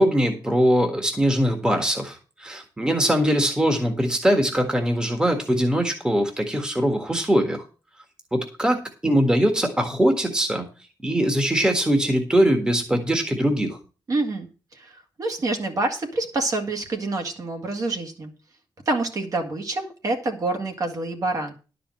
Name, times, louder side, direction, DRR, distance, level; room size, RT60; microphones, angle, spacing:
voice 1, 0.0-7.6 8.3-10.7 11.0-13.8, equal, 10° right, 4 dB, 1.6 m, -22 dB
voice 2, 14.1-18.3 18.9-21.5, right 2 dB, 45° right, 4 dB, 2.1 m, -27 dB
11.5 x 5.1 x 7.4 m, 0.34 s
wide cardioid pair, 170°, 8 cm